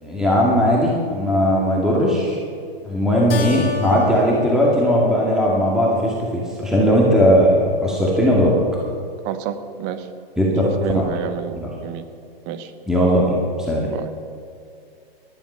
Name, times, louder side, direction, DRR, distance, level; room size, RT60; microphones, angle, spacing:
voice 1, 0.0-2.4 2.8-8.5 10.4-10.7 10.9-11.1 12.9-13.4 13.7-13.9, equal, ahead, -4 dB, 2.3 m, -18 dB
Keyboard (musical), 3.3-6.2, left 5 dB, 80° left, 1.8 m, -32 dB
voice 2, 9.2-10.1 10.6-12.0 12.5-12.7 13.8-14.1, right 10 dB, 30° right, 11 dB, 1.1 m, -29 dB
16.5 x 11.0 x 5.7 m, 2.4 s
hypercardioid pair, 135°, 30 cm